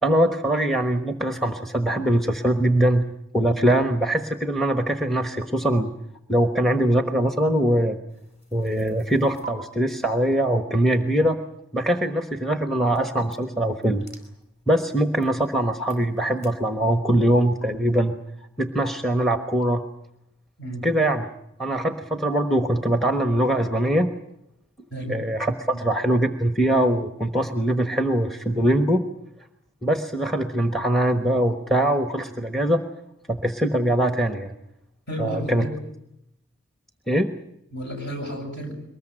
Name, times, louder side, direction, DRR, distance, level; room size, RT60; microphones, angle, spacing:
voice 1, 0.0-3.0 3.3-5.9 6.3-8.0 8.5-11.4 11.7-14.0 14.7-18.2 18.6-19.8 20.8-21.3 21.6-24.1 25.1-29.1 29.8-32.8 33.3-34.5 35.2-35.7 37.1-37.3, right 1 dB, ahead, 7 dB, 1.1 m, -22 dB
sound 1, 8.1-9.5 12.9-16.5, right 3 dB, 30° left, 4.5 m, -49 dB
voice 2, 35.1-35.7 37.7-38.7, equal, 50° left, 4 dB, 7.5 m, -32 dB
23.0 x 20.5 x 8.8 m, 0.81 s
head